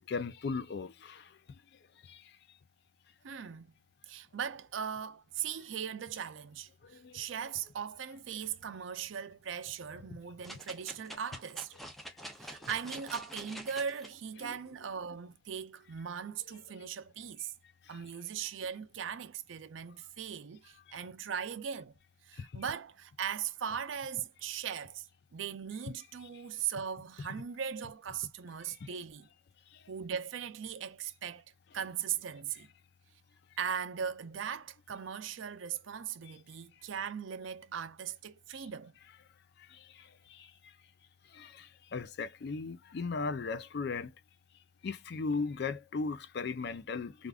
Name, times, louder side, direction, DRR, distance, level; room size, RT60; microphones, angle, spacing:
voice 1, 0.1-1.4 2.1-2.2 6.9-7.2 10.1-10.2 14.4-14.6 17.9-18.0 20.9-21.0 22.4-22.6 28.7-28.9 29.7-29.8 36.2-36.3 38.5-38.6 39.7-40.5 41.3-44.1 44.8-47.3, left 4 dB, 60° left, 0.4 m, -38 dB
voice 2, 3.2-3.7 4.1-11.7 12.4-17.5 17.9-21.9 22.2-25.1 25.3-29.3 29.9-31.4 31.7-32.7 33.6-38.9, right 7 dB, 80° right, 0.5 m, -39 dB
sound 1, 10.4-14.1 14.7-14.8, equal, ahead, 0.5 m, -46 dB
3.4 x 2.4 x 2.3 m
head